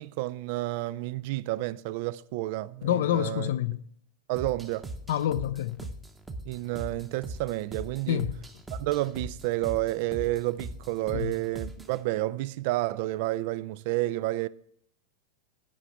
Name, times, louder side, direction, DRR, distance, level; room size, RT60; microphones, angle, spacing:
voice 1, 0.0-3.5 4.3-4.9 6.5-8.2 8.7-14.5, right 17 dB, 55° right, 0.3 m, -30 dB
voice 2, 2.8-3.8 5.1-5.9 8.1-8.5 11.1-11.4, left 11 dB, 65° left, 0.5 m, -28 dB
sound 1, 4.4-12.0, right 2 dB, 15° right, 0.8 m, -41 dB
8.5 x 5.1 x 7.5 m
figure-of-eight pair, 95°, 0 cm